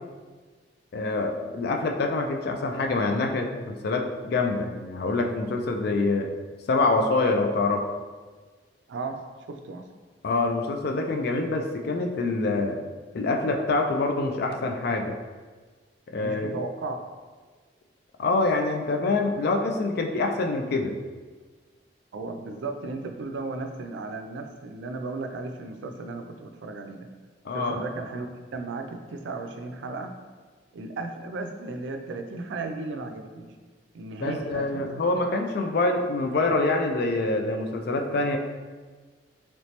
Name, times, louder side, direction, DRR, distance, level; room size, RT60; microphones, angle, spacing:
voice 1, 0.9-6.3 6.7-7.8 10.2-12.8 13.1-15.1 16.1-16.5 18.2-20.9 27.4-27.8 34.2-38.4, left 3 dB, 60° left, 4 dB, 0.4 m, -25 dB
voice 2, 8.9-9.2 9.5-9.9 16.2-17.0 22.1-27.1 27.5-30.1 30.7-33.5 33.9-34.9, right 3 dB, 85° right, 6 dB, 0.4 m, -35 dB
3.1 x 3.1 x 2.8 m, 1.4 s
head